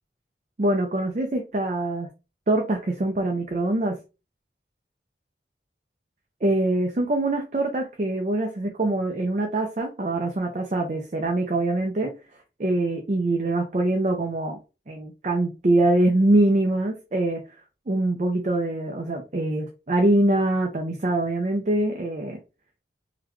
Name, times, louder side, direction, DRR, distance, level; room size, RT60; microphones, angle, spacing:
voice 1, 0.6-2.1 2.5-4.0 6.4-12.1 12.6-14.6 14.9-17.4 17.9-22.4, right 2 dB, 40° right, 3 dB, 0.5 m, -24 dB
3.8 x 2.2 x 3.0 m, 0.29 s
head